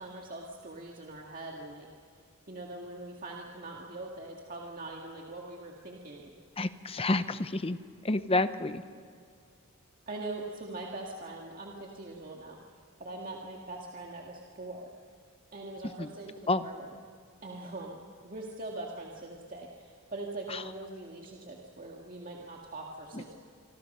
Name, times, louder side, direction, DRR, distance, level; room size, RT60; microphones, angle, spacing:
voice 1, 0.0-6.3 10.1-14.9 15.5-17.0 17.4-23.3, right 2 dB, 40° right, -1 dB, 2.1 m, -42 dB
voice 2, 6.6-7.8 8.0-8.8 16.0-16.1 16.5-16.6 20.5-20.6 23.1-23.2, left 2 dB, 25° left, 12 dB, 0.8 m, -29 dB
27.0 x 25.5 x 5.6 m, 2.2 s
head